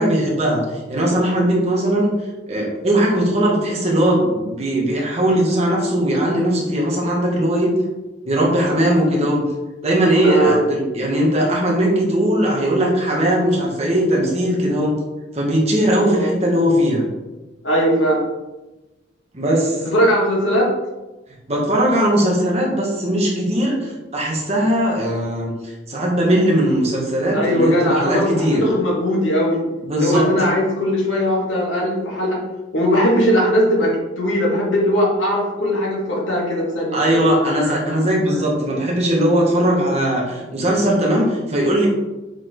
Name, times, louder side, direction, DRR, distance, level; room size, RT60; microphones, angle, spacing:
voice 1, 0.0-2.2 2.5-7.7 8.3-9.4 9.8-14.9 15.3-17.1 19.3-19.8 21.5-28.6 29.8-30.5 36.9-41.9, right 1 dB, 35° right, -3 dB, 1.9 m, -19 dB
voice 2, 10.2-10.6 16.1-16.3 17.6-18.2 19.8-20.7 27.3-29.6 30.0-32.4 32.7-38.4, equal, 90° left, -3 dB, 2.5 m, -19 dB
7.3 x 5.0 x 4.1 m, 1.1 s
head